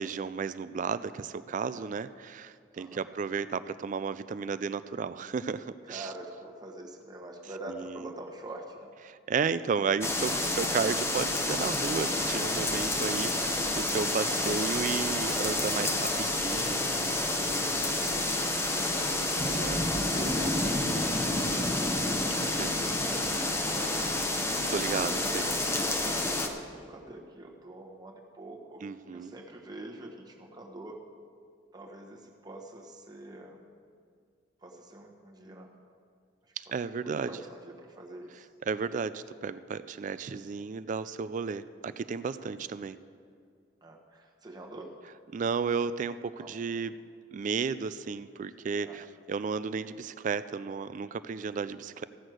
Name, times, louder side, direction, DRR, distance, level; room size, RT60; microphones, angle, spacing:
voice 1, 0.0-6.1 7.8-8.1 9.1-17.2 19.4-19.8 22.6-22.7 24.7-25.5 28.8-29.3 36.6-37.3 38.7-43.0 45.3-46.9 47.3-52.0, right 5 dB, 40° right, 14 dB, 0.3 m, -33 dB
voice 2, 1.6-1.9 2.7-3.1 5.8-8.9 17.3-17.8 18.1-22.2 22.6-24.2 26.1-31.0 31.7-33.6 34.6-35.7 36.7-36.8 37.0-38.5 40.2-40.4 42.4-42.7 43.8-45.0 46.4-46.6 48.8-49.0, right 1 dB, 20° right, 1 dB, 1.2 m, -45 dB
sound 1, 10.0-26.5, left 2 dB, 15° left, 0.8 m, -29 dB
15.0 x 6.3 x 7.7 m, 2.2 s
head